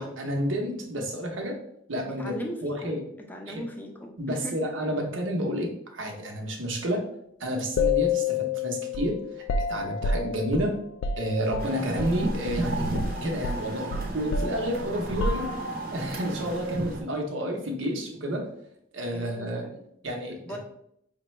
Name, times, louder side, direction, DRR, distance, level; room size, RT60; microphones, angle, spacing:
voice 1, 0.0-1.6 1.9-2.3 2.6-3.0 3.5-3.6 4.2-7.0 7.4-10.7 11.2-12.9 13.2-15.5 15.9-18.5 18.9-19.6 20.0-20.4, equal, 85° right, 2 dB, 0.8 m, -30 dB
voice 2, 2.1-4.9 19.0-19.8 20.4-20.6, equal, 10° left, 1 dB, 0.5 m, -39 dB
sound 1, 7.8-12.2 12.5-12.7 12.9-15.9, left 4 dB, 85° left, 0.3 m, -29 dB
sound 2, 11.6-17.0, right 1 dB, 50° right, 0.7 m, -32 dB
5.0 x 2.2 x 3.1 m, 0.73 s
head